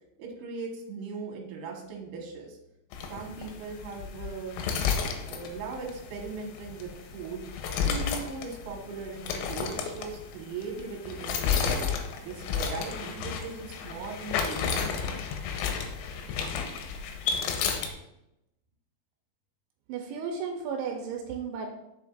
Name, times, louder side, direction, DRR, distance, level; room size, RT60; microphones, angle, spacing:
voice 1, 0.2-2.6 3.1-4.6 5.2-7.4 7.8-11.8 12.2-15.1, right 4 dB, 70° right, 0 dB, 3.1 m, -39 dB
sound 1, 2.9-17.9, left 6 dB, 85° left, 3.0 m, -32 dB
voice 2, 19.9-21.7, right 6 dB, 85° right, 2 dB, 3.0 m, -34 dB
7.8 x 6.6 x 2.5 m, 0.87 s
omnidirectional pair, 5.3 m